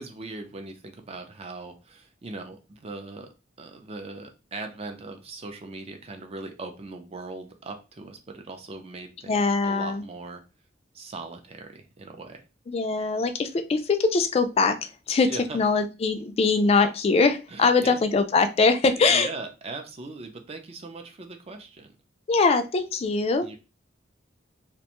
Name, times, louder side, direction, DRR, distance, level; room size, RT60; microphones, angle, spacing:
voice 1, 0.0-3.3 3.6-10.4 10.9-12.4 15.3-15.6 17.5-18.0 19.0-22.0 23.4-23.6, right 3 dB, 35° right, 5 dB, 0.5 m, -40 dB
voice 2, 9.3-10.0 12.7-19.3 22.3-23.5, left 4 dB, 35° left, 8 dB, 0.3 m, -22 dB
2.5 x 2.2 x 2.9 m, 0.30 s
head